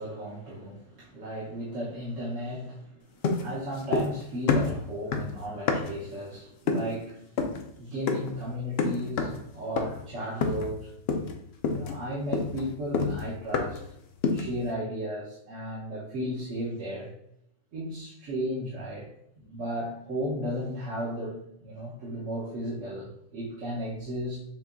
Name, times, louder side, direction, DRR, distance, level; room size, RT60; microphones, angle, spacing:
voice 1, 0.0-7.2 7.8-10.9 11.6-13.8 14.3-17.1 17.7-19.1 19.4-24.4, equal, 70° right, -7 dB, 1.4 m, -35 dB
sound 1, 3.2-4.2 4.5-6.1 6.7-7.0 7.4-7.6 8.1-8.4 8.8-9.4 9.8-10.1 10.4-10.8 11.1-11.4 11.6-13.9 14.2-14.6, left 4 dB, 60° left, 0.7 m, -28 dB
7.1 x 2.7 x 2.5 m, 0.74 s
omnidirectional pair, 1.3 m